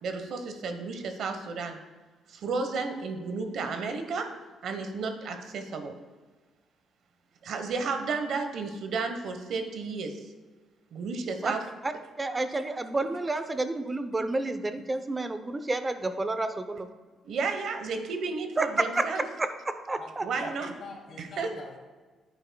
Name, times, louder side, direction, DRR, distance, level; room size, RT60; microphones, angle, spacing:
voice 1, 0.0-1.8 2.3-4.3 4.6-6.0 7.4-10.2 10.9-11.7 17.3-19.2 20.2-20.7 21.2-21.5, right 4 dB, 70° right, 6 dB, 1.1 m, -32 dB
voice 2, 12.2-16.9 18.6-18.7 19.0-19.1 19.4-20.5, right 2 dB, 20° right, 10 dB, 0.7 m, -30 dB
voice 3, 20.0-21.8, left 3 dB, 65° left, -2 dB, 2.8 m, -45 dB
10.5 x 8.9 x 2.3 m, 1.3 s
cardioid pair, 90°, 0 cm